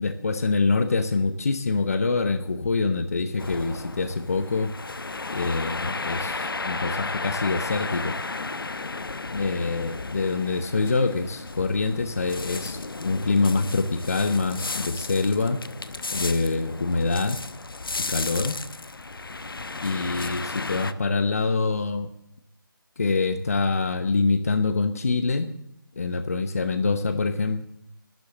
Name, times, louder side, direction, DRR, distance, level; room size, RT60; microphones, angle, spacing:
voice 1, 0.0-4.7 5.3-8.2 9.3-15.6 16.1-17.4 18.1-18.6 19.8-22.1 23.0-25.5 26.0-27.6, left 3 dB, 40° left, 10 dB, 0.9 m, -25 dB
sound 1, 3.4-20.9, left 3 dB, 75° left, 0.9 m, -34 dB
12.0 x 10.0 x 7.8 m, 0.77 s
figure-of-eight pair, 170°, 12 cm